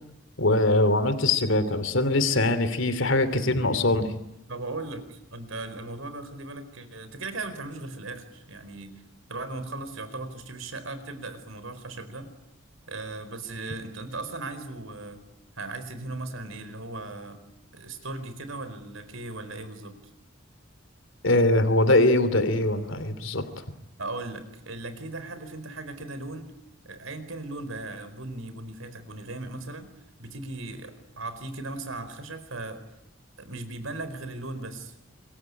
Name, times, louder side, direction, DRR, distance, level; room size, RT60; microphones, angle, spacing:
voice 1, 0.4-4.1 21.2-23.4, left 2 dB, 65° left, 12 dB, 2.9 m, -22 dB
voice 2, 4.5-9.0 9.3-12.3 12.9-15.2 15.6-17.4 17.7-20.0 24.0-26.5 26.8-29.9 30.2-32.8 33.4-34.9, right 2 dB, 75° right, 11 dB, 4.5 m, -37 dB
26.5 x 22.5 x 9.9 m, 0.85 s
head